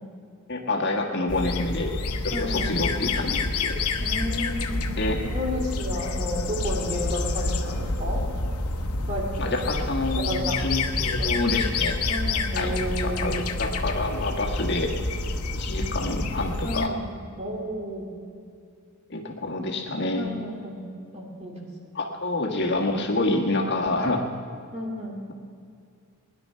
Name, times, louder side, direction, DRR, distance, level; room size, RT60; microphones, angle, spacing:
voice 1, 0.5-1.9 2.2-3.8 5.0-5.3 9.4-12.0 12.5-12.7 13.0-14.9 15.5-16.9 19.1-20.3 21.9-24.3, left 2 dB, 50° left, 0 dB, 1.6 m, -27 dB
sound 1, 1.3-16.9, left 3 dB, 85° left, 1.0 m, -28 dB
voice 2, 2.3-2.7 4.0-4.9 5.3-8.2 9.1-9.8 10.1-10.6 11.2-11.3 12.1-13.5 16.6-17.0 17.4-18.1 20.1-20.9 21.1-21.7 24.7-25.3, equal, 30° right, -2 dB, 2.8 m, -32 dB
21.0 x 10.5 x 5.7 m, 2.3 s
head